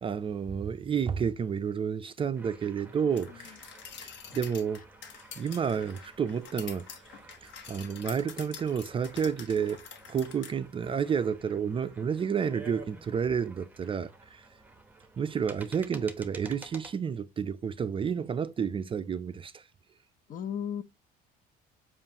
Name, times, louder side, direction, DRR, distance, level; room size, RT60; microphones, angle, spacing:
voice 1, 0.0-3.6 4.0-4.8 5.4-6.9 7.4-14.5 15.2-19.6, right 7 dB, 25° right, 0.4 m, -30 dB
sound 1, 2.4-17.0, right 3 dB, 10° right, 0.8 m, -52 dB
voice 2, 3.0-3.6 20.3-20.8, left 8 dB, 45° left, 0.6 m, -37 dB
sound 2, 3.2-10.5, left 7 dB, 70° left, 1.1 m, -47 dB
7.2 x 2.5 x 2.8 m
cardioid pair, 100°, 20 cm